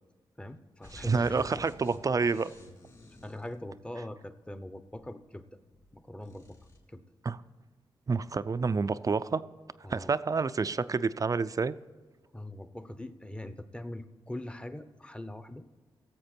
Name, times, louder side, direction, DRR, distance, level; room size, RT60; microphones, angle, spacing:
voice 1, 0.4-1.6 2.3-2.4 3.2-5.4 5.9-6.6 6.9-7.0 9.8-10.1 12.3-15.6, left 1 dB, 10° left, 11 dB, 0.8 m, -42 dB
sound 1, 0.8-4.1 4.8-5.9 6.2-6.8, left 1 dB, 40° left, 3.1 m, -53 dB
voice 2, 0.9-2.5 7.2-7.4 8.1-9.4 9.9-11.8, right 4 dB, 40° right, 14 dB, 0.5 m, -28 dB
16.0 x 7.5 x 4.5 m, 1.5 s
cardioid pair, 65°, 9 cm